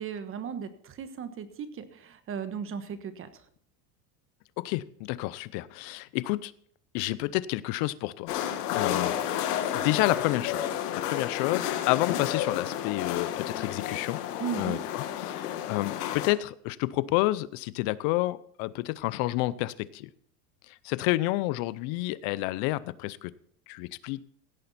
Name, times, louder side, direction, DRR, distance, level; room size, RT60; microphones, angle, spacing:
voice 1, 0.0-3.4 9.2-9.4 14.4-14.8, right 7 dB, 30° right, 11 dB, 1.3 m, -36 dB
voice 2, 4.6-6.5 6.9-8.3 8.7-14.2 14.6-20.1 20.7-23.3 23.7-24.2, left 18 dB, 55° left, 19 dB, 0.7 m, -30 dB
sound 1, 8.3-16.3, left 10 dB, 85° left, 1.6 m, -31 dB
16.5 x 8.6 x 4.2 m, 0.63 s
supercardioid pair, 130°, 46 cm